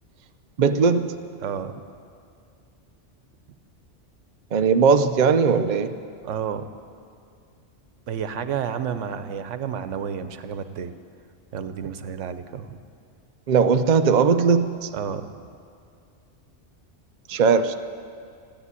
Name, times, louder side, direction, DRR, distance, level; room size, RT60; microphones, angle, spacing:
voice 1, 0.6-1.1 4.5-5.9 13.5-14.9 17.3-17.7, right 5 dB, 50° right, 8 dB, 0.7 m, -19 dB
voice 2, 1.4-1.8 6.2-6.7 8.1-10.9 11.5-12.8 14.9-15.4, right 7 dB, 85° right, 11 dB, 1.1 m, -31 dB
14.0 x 10.0 x 9.7 m, 2.3 s
omnidirectional pair, 1.2 m